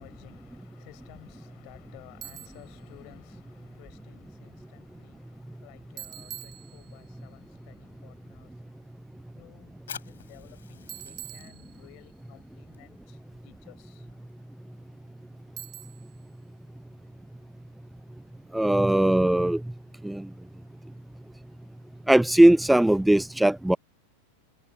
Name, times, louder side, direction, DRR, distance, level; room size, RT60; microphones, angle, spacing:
voice 1, 0.0-8.9 9.4-14.2, left 32 dB, 45° left, 5.8 m, -54 dB
Bicycle, 2.2-2.7 6.0-7.2 10.9-12.1 15.6-16.2, right 13 dB, 30° right, 1.4 m, -44 dB
Fire, 9.8-16.9, left 8 dB, 65° left, 8.0 m, -50 dB
voice 2, 18.5-19.6 20.0-20.3 22.1-23.8, right 1 dB, 5° right, 0.3 m, -19 dB
figure-of-eight pair, 90°, 0 cm